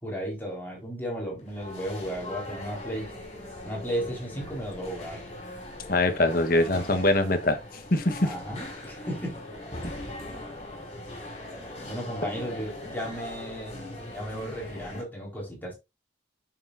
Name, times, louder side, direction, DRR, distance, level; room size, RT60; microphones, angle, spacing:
voice 1, 0.0-3.1 3.6-5.2 8.2-9.4 11.8-13.7 14.1-15.8, equal, 10° left, 4.6 m, -34 dB
sound 1, 1.4-15.0, left 1 dB, 35° left, 5.3 m, -40 dB
voice 2, 5.9-7.6 7.9-8.3 9.8-9.9, left 2 dB, 50° left, 1.3 m, -23 dB
9.5 x 7.1 x 2.7 m
head